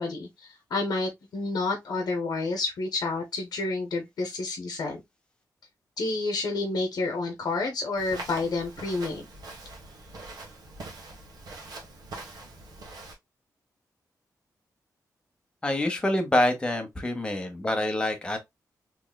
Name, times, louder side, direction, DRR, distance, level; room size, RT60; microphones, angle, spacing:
voice 1, 0.0-5.0 6.0-9.3, left 3 dB, 70° left, 0.8 m, -29 dB
Walk footsteps, 8.0-13.1, right 2 dB, 85° right, 1.2 m, -43 dB
voice 2, 15.6-18.4, left 1 dB, 15° left, 0.9 m, -26 dB
3.7 x 3.1 x 2.2 m
wide cardioid pair, 135°, 7 cm